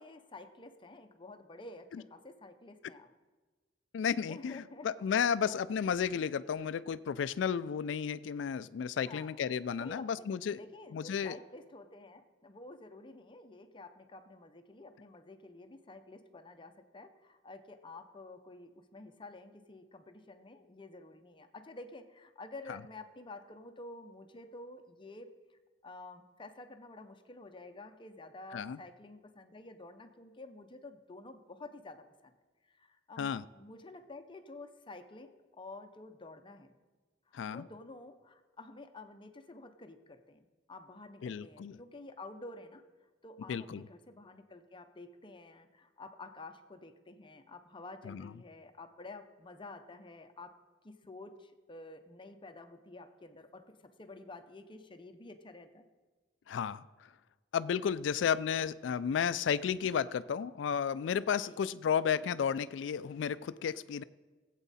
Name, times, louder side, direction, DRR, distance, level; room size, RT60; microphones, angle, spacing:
voice 1, 0.0-3.1 4.3-4.9 5.4-5.6 9.1-9.5 9.8-10.3 10.6-25.3 25.8-32.3 32.7-36.7 37.3-42.8 43.2-50.6 50.8-55.8 61.4-61.6, left 2 dB, 25° left, 8 dB, 0.7 m, -50 dB
voice 2, 3.9-10.6 10.9-11.4 22.7-22.8 28.5-28.8 33.2-33.4 37.3-37.7 41.2-41.8 43.5-43.8 48.0-48.3 56.5-57.1 57.5-64.0, left 7 dB, 85° left, 16 dB, 0.3 m, -33 dB
18.0 x 8.2 x 4.2 m, 1.3 s
head